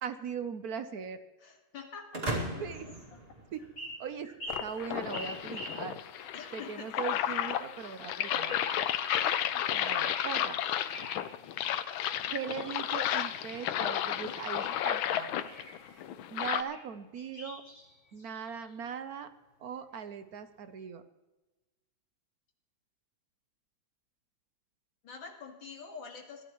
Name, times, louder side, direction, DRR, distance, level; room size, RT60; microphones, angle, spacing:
voice 1, 0.0-1.2 2.6-2.9 3.5-3.6 4.0-4.3 4.6-8.6 9.7-10.6 12.3-15.3 15.9-16.0 16.3-17.6 18.1-19.3 19.6-21.0, right 7 dB, 60° right, 10 dB, 1.1 m, -39 dB
voice 2, 1.4-2.9 6.3-6.9 25.0-26.4, left 5 dB, 70° left, 3 dB, 2.6 m, -46 dB
sound 1, 2.1-4.1, right 1 dB, 30° right, 2.4 m, -37 dB
sound 2, 2.7-3.1 3.6-6.3 7.0-7.5 7.8-9.5 9.8-10.4 10.7-11.3 12.0-13.1 13.6-14.8 15.4-15.8 16.7-16.8 17.2-18.7, equal, 40° left, 4.8 m, -46 dB
sound 3, 4.5-16.6, left 11 dB, 85° left, 1.5 m, -32 dB
22.0 x 13.5 x 3.1 m, 1.1 s
omnidirectional pair, 2.1 m